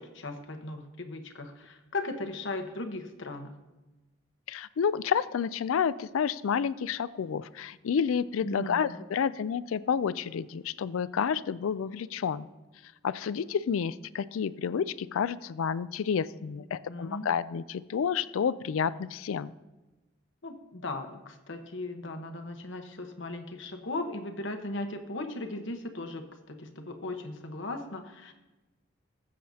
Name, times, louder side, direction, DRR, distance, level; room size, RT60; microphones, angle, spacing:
voice 1, 0.0-3.5 8.4-9.0 16.9-17.2 20.4-28.3, left 2 dB, 65° left, 5 dB, 1.2 m, -37 dB
voice 2, 4.5-12.5 13.0-19.5, left 7 dB, 90° left, 17 dB, 0.4 m, -30 dB
20.5 x 7.6 x 2.8 m, 1.1 s
head